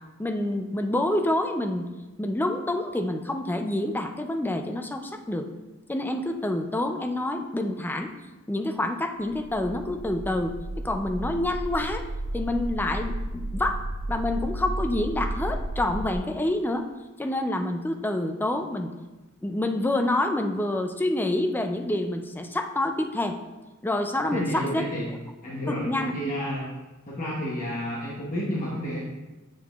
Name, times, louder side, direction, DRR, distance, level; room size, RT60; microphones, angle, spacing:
voice 1, 0.2-1.9 2.2-5.5 5.9-8.1 8.5-12.0 12.3-13.8 14.1-16.9 17.2-18.9 19.4-23.4 23.8-24.9 25.7-26.1, left 1 dB, 10° left, 5 dB, 0.3 m, -27 dB
sound 1, 9.2-16.2, right 1 dB, 75° right, 0.5 m, -33 dB
voice 2, 24.2-25.1 25.4-26.7 27.1-29.0, equal, 40° left, -6 dB, 1.0 m, -31 dB
7.6 x 5.5 x 2.3 m, 1.1 s
head